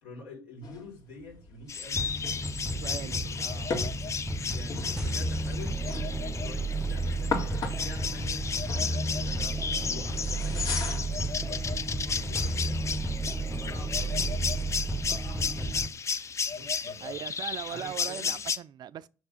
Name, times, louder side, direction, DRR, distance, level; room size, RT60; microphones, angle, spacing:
voice 1, 0.0-3.7 4.5-12.8 13.4-16.1 16.5-17.2 17.7-18.4, left 2 dB, 80° left, 2.8 m, -47 dB
sound 1, 0.6-11.3, left 4 dB, 50° left, 1.9 m, -39 dB
sound 2, 1.7-18.6, left 6 dB, 35° left, 0.5 m, -34 dB
sound 3, 1.9-15.9, right 2 dB, 10° right, 0.6 m, -32 dB
voice 2, 2.8-4.0 4.4-4.7 15.3-15.8 17.0-19.1, right 10 dB, 50° right, 0.4 m, -41 dB
6.3 x 3.4 x 5.5 m
hypercardioid pair, 60°, 9 cm